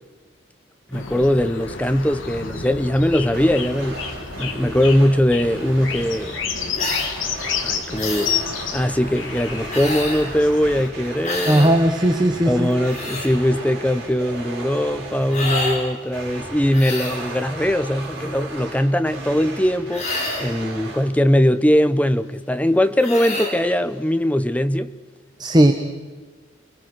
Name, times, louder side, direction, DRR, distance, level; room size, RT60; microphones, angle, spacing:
sound 1, 0.9-10.9, left 6 dB, 70° left, 2.6 m, -30 dB
voice 1, 0.9-4.0 4.4-6.4 7.6-8.4 8.7-11.7 12.5-20.1 20.4-24.9, equal, 5° left, 0.9 m, -20 dB
sound 2, 3.2-21.1, right 2 dB, 55° right, 5.6 m, -36 dB
sound 3, 6.7-7.1 8.0-8.4 9.7-10.3 11.2-11.7 12.6-13.3 15.3-15.8 16.7-17.3 19.9-20.5 23.0-23.6, left 2 dB, 35° left, 6.7 m, -28 dB
voice 2, 11.5-12.7 25.4-25.7, right 1 dB, 20° right, 1.3 m, -16 dB
30.0 x 21.5 x 6.2 m
head